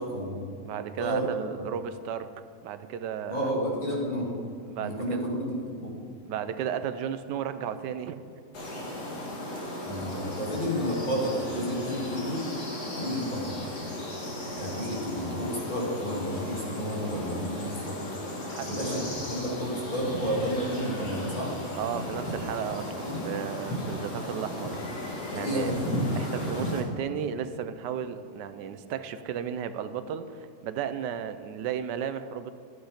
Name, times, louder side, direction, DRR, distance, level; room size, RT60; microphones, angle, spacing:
voice 1, 0.0-0.5 1.0-1.3 1.6-1.7 3.3-4.3 4.8-6.0 9.8-12.5 12.9-13.6 14.6-18.0 18.7-21.6 23.0-23.2 25.3-25.9, equal, 30° left, -4 dB, 2.7 m, -31 dB
voice 2, 0.6-2.3 2.6-3.5 4.7-5.3 6.3-8.2 8.6-9.0 18.4-19.1 21.7-24.8 25.3-25.7 26.1-32.5, right 8 dB, 85° right, 11 dB, 1.3 m, -34 dB
sound 1, 8.5-26.8, left 1 dB, 65° left, 2.6 m, -35 dB
13.5 x 8.1 x 5.0 m, 2.6 s
omnidirectional pair, 1.8 m